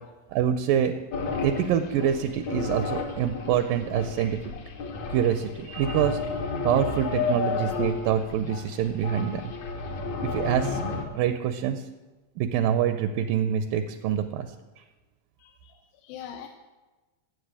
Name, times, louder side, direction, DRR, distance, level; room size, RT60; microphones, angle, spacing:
voice 1, 0.3-0.9 1.4-4.4 5.1-6.2 6.6-9.4 10.2-10.8 11.2-11.8 12.4-14.5, right 9 dB, 80° right, 9 dB, 2.1 m, -25 dB
sound 1, 1.1-11.0, left 4 dB, 60° left, 2.3 m, -32 dB
voice 2, 15.4-16.5, left 9 dB, 85° left, 4 dB, 2.6 m, -43 dB
13.0 x 7.9 x 8.1 m, 1.2 s
omnidirectional pair, 4.2 m